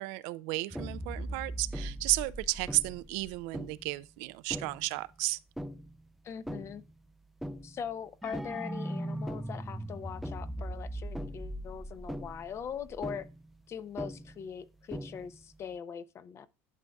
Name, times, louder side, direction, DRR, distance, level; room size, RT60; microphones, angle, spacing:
voice 1, 0.0-5.4, right 21 dB, 75° right, 0.4 m, -33 dB
sound 1, 0.7-3.9 4.5-5.0 5.6-6.0 6.5-6.9 7.4-7.9 8.2-13.6 14.0-14.6 14.9-15.5, equal, ahead, 0.4 m, -39 dB
voice 2, 6.2-6.8 7.6-13.3 13.7-16.5, left 7 dB, 40° left, 0.6 m, -41 dB
11.0 x 5.1 x 2.3 m
supercardioid pair, 90°, 7 cm